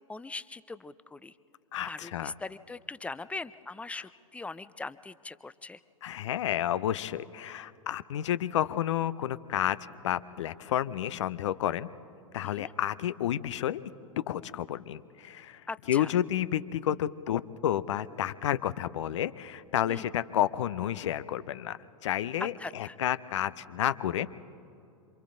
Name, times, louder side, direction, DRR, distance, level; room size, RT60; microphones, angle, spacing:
voice 1, 0.1-1.3 1.8-5.8 12.4-12.7 15.7-16.2 19.9-20.1 22.4-23.0, left 3 dB, 5° left, 16 dB, 0.5 m, -41 dB
voice 2, 1.7-2.3 6.0-9.8 10.0-11.9 12.3-13.8 14.3-15.6 15.9-24.4, left 11 dB, 60° left, 15 dB, 0.7 m, -30 dB
27.0 x 27.0 x 3.8 m, 2.6 s
figure-of-eight pair, 90°, 17 cm